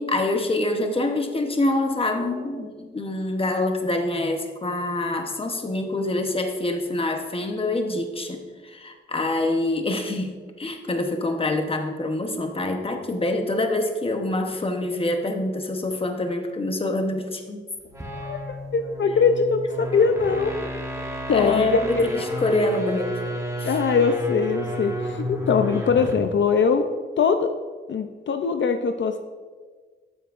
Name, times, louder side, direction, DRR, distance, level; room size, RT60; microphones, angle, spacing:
voice 1, 0.0-17.6 21.3-23.1 23.6-23.7, left 2 dB, 30° left, 4 dB, 0.9 m, -26 dB
sound 1, 17.8-26.3, equal, 15° right, 1.2 m, -32 dB
voice 2, 18.7-20.5 21.3-22.2 23.6-26.9 27.2-27.5 27.9-29.2, left 5 dB, 65° left, 6 dB, 0.5 m, -22 dB
12.5 x 9.0 x 2.5 m, 1.5 s
wide cardioid pair, 155°, 20 cm